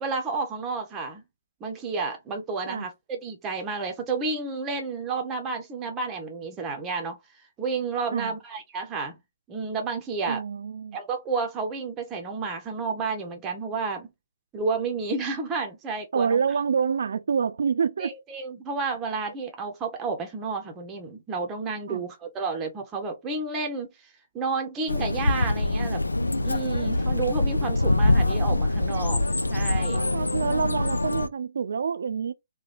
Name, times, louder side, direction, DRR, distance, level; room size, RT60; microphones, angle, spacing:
voice 1, 0.0-1.2 1.6-7.2 7.6-9.2 9.5-10.4 10.9-14.1 14.5-16.4 18.0-26.0 26.4-29.2 29.5-30.0, right 4 dB, 20° right, 0.7 m, -31 dB
voice 2, 10.3-11.0 16.1-18.1 21.9-22.1 28.9-29.2 29.9-32.3, right 6 dB, 60° right, 0.4 m, -27 dB
sound 1, 24.9-31.3, left 2 dB, 85° left, 0.4 m, -24 dB
3.0 x 2.2 x 4.1 m
figure-of-eight pair, 135°, 0 cm